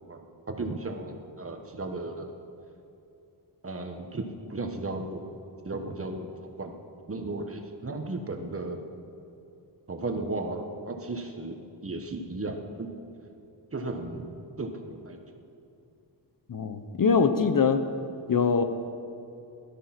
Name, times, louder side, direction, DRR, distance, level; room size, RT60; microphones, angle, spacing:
voice 1, 0.1-2.4 3.6-5.2 5.6-6.8 7.1-8.8 9.9-12.9 13.7-15.2, right 2 dB, 30° right, 4 dB, 1.2 m, -35 dB
voice 2, 16.5-17.8 18.3-18.6, left 5 dB, 50° left, 9 dB, 0.8 m, -23 dB
17.0 x 12.0 x 5.9 m, 2.7 s
wide cardioid pair, 155°, 43 cm